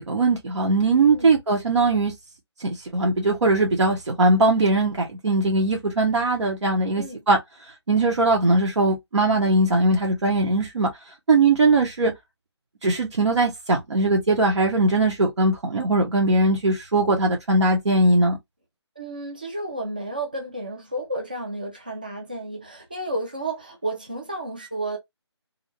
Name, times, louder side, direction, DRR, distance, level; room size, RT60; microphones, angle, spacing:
voice 1, 0.0-2.1 2.6-7.4 7.9-10.9 11.3-12.1 12.8-18.4, right 2 dB, 85° right, 0.8 m, -20 dB
voice 2, 19.0-25.0, right 1 dB, 20° right, 0.3 m, -32 dB
2.6 x 2.1 x 2.8 m
hypercardioid pair, 175°, 15 cm